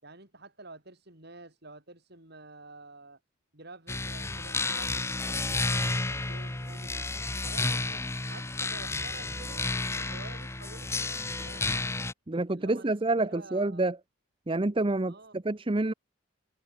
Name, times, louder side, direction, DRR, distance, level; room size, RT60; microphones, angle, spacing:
voice 1, 0.0-3.2 3.5-7.1 7.4-12.1 12.5-13.9 15.1-15.4, right 2 dB, 50° right, 6.0 m, -49 dB
sound 1, 3.9-12.1, left 3 dB, 15° left, 0.8 m, -31 dB
voice 2, 12.3-14.0 14.5-15.9, right 2 dB, 25° right, 0.7 m, -28 dB
head